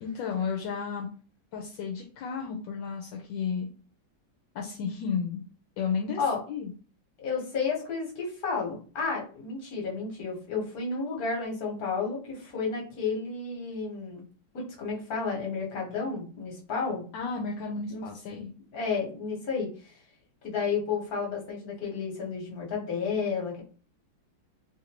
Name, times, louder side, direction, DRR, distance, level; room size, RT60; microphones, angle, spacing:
voice 1, 0.0-1.1 1.5-3.7 4.5-5.4 5.8-6.2 6.5-6.7 17.1-18.5, left 6 dB, 75° left, 0 dB, 1.3 m, -32 dB
voice 2, 7.2-14.2 14.5-17.0 17.9-18.0 18.7-19.9 20.4-23.6, left 5 dB, 55° left, -1 dB, 1.6 m, -32 dB
3.4 x 2.5 x 2.9 m, 0.38 s
omnidirectional pair, 2.1 m